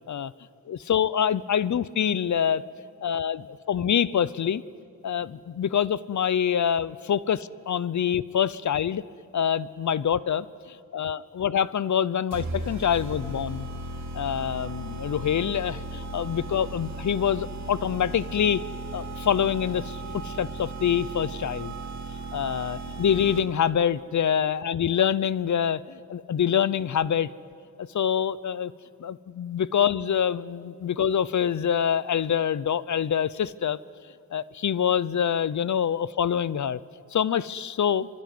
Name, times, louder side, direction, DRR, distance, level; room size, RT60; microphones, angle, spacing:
voice 1, 0.7-2.6 3.0-4.6 5.0-9.0 9.3-13.7 14.1-18.6 18.9-21.7 22.3-27.3 27.8-28.7 29.0-33.8 34.3-36.8 37.1-38.1, left 8 dB, 60° left, 18 dB, 0.7 m, -25 dB
sound 1, 12.3-23.7, right 2 dB, 55° right, 3.0 m, -36 dB
25.0 x 25.0 x 9.4 m, 2.5 s
wide cardioid pair, 110°, 33 cm